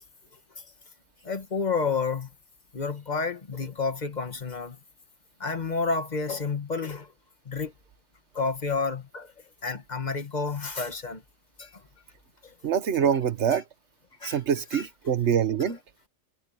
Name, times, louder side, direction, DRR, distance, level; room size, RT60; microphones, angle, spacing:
voice 1, 1.2-2.3 2.7-4.8 5.4-7.1 7.4-7.7 8.3-9.3 9.6-11.2 11.6-11.8 12.4-12.5 13.5-13.6 14.2-14.4 14.7-14.9 15.6-15.7, left 4 dB, 35° left, 1.5 m, -30 dB
voice 2, 12.6-13.6 14.2-15.8, right 8 dB, 60° right, 1.4 m, -25 dB
omnidirectional pair, 1.3 m